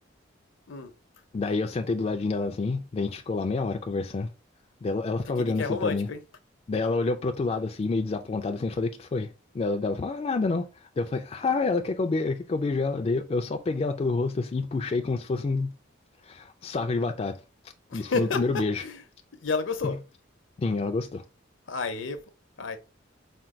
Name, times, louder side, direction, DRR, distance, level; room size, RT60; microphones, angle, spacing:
voice 1, 1.3-4.3 4.8-6.1 6.7-9.3 9.5-10.7 11.0-15.7 16.2-17.4 17.9-18.8 19.8-20.0 20.6-21.2, left 3 dB, 30° left, 0.3 m, -28 dB
voice 2, 5.2-6.2 17.9-19.0 19.4-20.0 21.7-22.2 22.6-22.8, left 4 dB, 75° left, 0.6 m, -30 dB
4.4 x 2.3 x 3.6 m
head